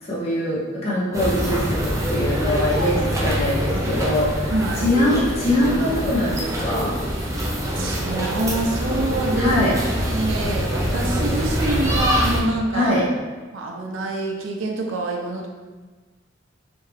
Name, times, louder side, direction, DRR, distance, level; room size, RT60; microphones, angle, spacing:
voice 1, 0.0-6.9 9.4-9.7 12.7-13.0, left 1 dB, 35° left, -7 dB, 0.9 m, -22 dB
sound 1, 1.1-12.4, equal, 15° right, 0.5 m, -24 dB
voice 2, 4.5-4.9 7.7-9.6 10.0-12.9 13.5-15.5, right 2 dB, 80° right, 0 dB, 0.6 m, -26 dB
3.4 x 2.7 x 3.3 m, 1.4 s
head